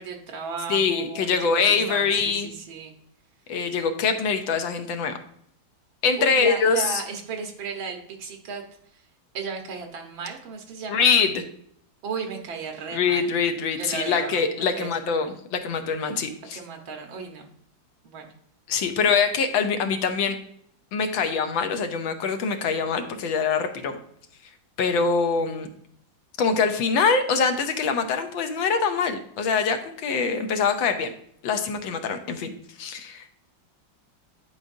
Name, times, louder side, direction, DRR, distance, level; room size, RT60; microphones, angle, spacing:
voice 1, 0.0-2.9 6.2-8.6 8.9-9.0 9.3-11.1 12.0-13.4 13.8-14.4 14.7-15.3 16.5-17.5 18.0-18.3 24.8-25.0, right 5 dB, 85° right, 3 dB, 1.9 m, -35 dB
voice 2, 0.7-2.5 3.5-5.2 6.0-7.0 10.9-11.4 12.9-16.6 18.7-20.4 20.9-24.0 24.8-25.7 26.4-31.1 31.4-32.5 32.8-33.3, left 5 dB, 85° left, 7 dB, 1.5 m, -24 dB
10.5 x 4.8 x 2.6 m, 0.67 s
omnidirectional pair, 2.1 m